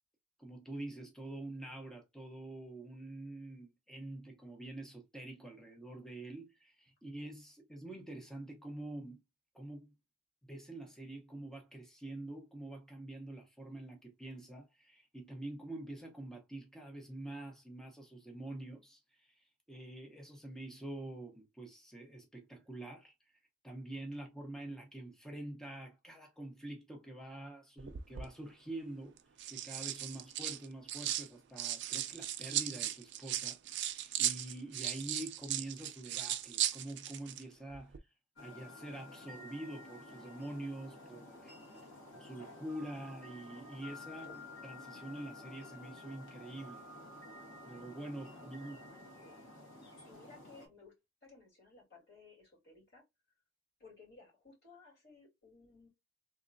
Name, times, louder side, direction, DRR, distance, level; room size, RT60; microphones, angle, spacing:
voice 1, 0.4-9.2 9.5-9.9 10.4-23.1 23.6-29.1 29.5-38.0 38.4-41.5 42.1-44.3 44.6-46.8 47.7-48.8, right 1 dB, ahead, 0.7 m, -46 dB
sound 1, 27.8-28.3 29.2-31.3 31.6-37.4 37.7-38.0, right 12 dB, 55° right, 0.4 m, -37 dB
sound 2, 38.4-50.7, left 2 dB, 75° left, 1.6 m, -52 dB
voice 2, 48.1-49.4 50.0-50.9 51.2-53.0 53.8-55.9, left 3 dB, 55° left, 2.5 m, -59 dB
3.5 x 3.0 x 2.5 m
head